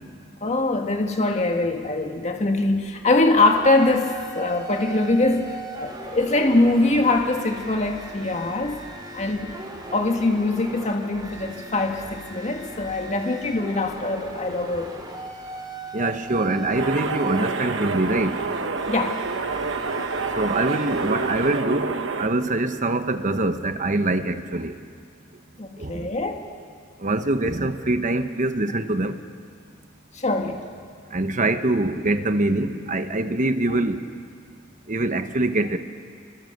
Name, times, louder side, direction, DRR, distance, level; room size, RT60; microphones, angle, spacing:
voice 1, 0.4-8.8 9.1-9.5 9.9-14.9 18.9-19.2 25.6-26.4 30.1-30.6, left 2 dB, 35° left, 3 dB, 1.7 m, -23 dB
sound 1, 3.4-21.6, right 1 dB, 20° right, 3.1 m, -38 dB
voice 2, 15.9-18.4 20.4-24.7 25.8-26.1 27.0-29.2 31.1-34.0 34.9-35.8, right 2 dB, 40° right, 9 dB, 1.1 m, -24 dB
sound 2, 16.8-22.3, right 4 dB, 75° right, 1.3 m, -28 dB
28.5 x 23.0 x 6.7 m, 2.2 s
head